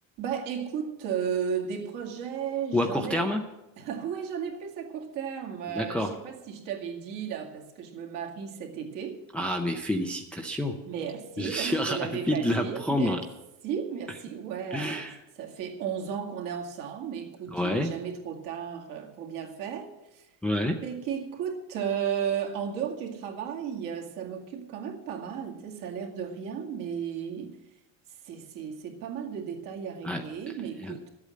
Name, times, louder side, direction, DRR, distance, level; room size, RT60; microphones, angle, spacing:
voice 1, 0.2-3.3 3.8-9.2 10.9-13.2 13.6-15.1 15.4-20.3 20.8-27.6 28.2-31.1, right 8 dB, 55° right, 2.2 m, -34 dB
voice 2, 2.7-3.4 5.7-6.1 9.3-10.8 11.4-12.0 12.3-13.2 14.7-15.1 17.5-17.9 20.4-20.8 30.0-30.2 30.8-30.9, left 1 dB, 5° left, 0.4 m, -28 dB
12.5 x 8.4 x 7.5 m
cardioid pair, 160°, 39 cm